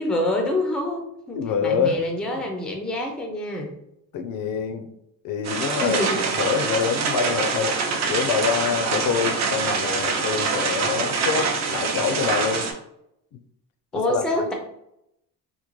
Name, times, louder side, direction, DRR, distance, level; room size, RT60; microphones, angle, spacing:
voice 1, 0.0-3.7 5.8-6.2 13.9-14.5, left 1 dB, 5° left, 2 dB, 0.4 m, -26 dB
voice 2, 1.4-2.1 2.4-2.5 4.1-4.9 5.2-6.0 6.3-7.8 8.1-12.7 13.3-13.4 13.9-14.5, left 6 dB, 60° left, 7 dB, 0.5 m, -26 dB
sound 1, 5.4-12.7, right 4 dB, 45° right, 0.6 m, -25 dB
3.6 x 2.1 x 3.0 m, 0.79 s
cardioid pair, 130°, 38 cm